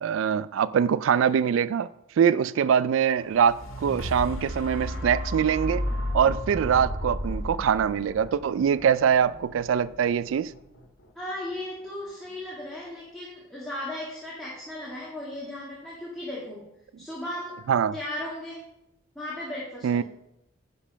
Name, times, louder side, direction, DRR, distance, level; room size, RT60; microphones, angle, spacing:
voice 1, 0.0-1.9 2.2-5.8 6.1-10.5 17.7-17.9 19.8-20.0, right 7 dB, 75° right, 0.3 m, -23 dB
sound 1, 3.2-11.3 11.8-11.9, equal, 85° left, 1.6 m, -34 dB
voice 2, 11.2-16.6 17.0-17.6 17.9-18.7 19.2-20.0, left 1 dB, ahead, 1.8 m, -36 dB
10.0 x 5.3 x 5.5 m
head